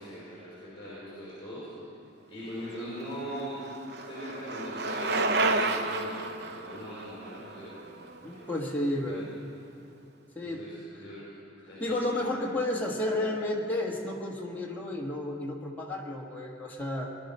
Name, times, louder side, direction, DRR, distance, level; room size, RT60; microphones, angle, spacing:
voice 1, 0.0-1.7 2.3-3.6 4.0-8.6 9.0-9.2 10.4-11.2 11.7-12.1, equal, 25° left, -9 dB, 4.8 m, -41 dB
Bicycle, 2.8-8.8, right 3 dB, 55° right, 0.7 m, -31 dB
voice 2, 8.2-9.4 10.3-10.6 10.9-11.0 11.8-17.1, left 1 dB, 10° left, -2 dB, 1.6 m, -32 dB
20.5 x 11.5 x 5.5 m, 2.6 s
head